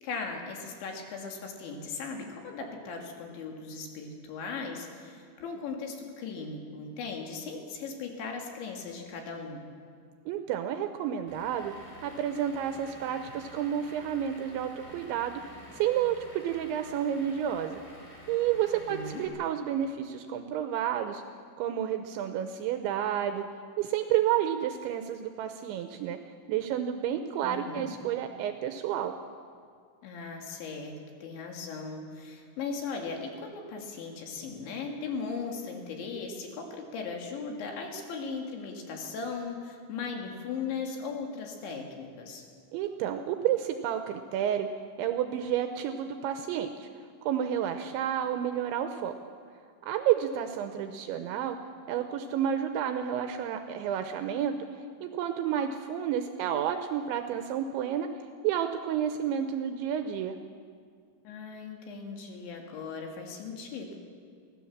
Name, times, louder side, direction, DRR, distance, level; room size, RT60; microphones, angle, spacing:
voice 1, 0.0-9.6 18.9-19.2 27.4-28.0 30.0-42.4 61.3-63.9, left 4 dB, 65° left, 2 dB, 4.2 m, -38 dB
voice 2, 10.3-11.7 12.0-15.4 15.7-17.8 18.3-21.2 21.6-23.4 23.8-26.2 26.5-29.1 42.7-44.7 45.0-46.9 47.2-49.1 49.9-51.6 51.9-54.5 55.0-58.1 58.4-60.4, right 10 dB, 80° right, 7 dB, 2.8 m, -30 dB
Vehicle / Engine, 11.3-19.3, equal, ahead, 4.3 m, -49 dB
23.5 x 16.5 x 7.2 m, 2.1 s
omnidirectional pair, 5.9 m